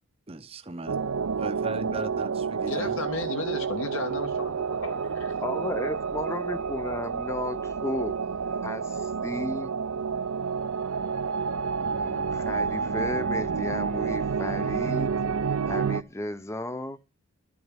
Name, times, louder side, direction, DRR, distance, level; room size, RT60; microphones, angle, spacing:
voice 1, 0.3-1.0 1.4-3.0, right 2 dB, 25° right, 0.7 m, -37 dB
sound 1, 0.9-16.0, right 5 dB, 80° right, 0.6 m, -29 dB
voice 2, 2.7-5.4, left 2 dB, 70° left, 1.9 m, -34 dB
voice 3, 5.4-8.2 8.6-9.7 11.8-15.1 15.6-17.0, left 1 dB, 15° left, 0.6 m, -34 dB
12.0 x 6.2 x 8.9 m
head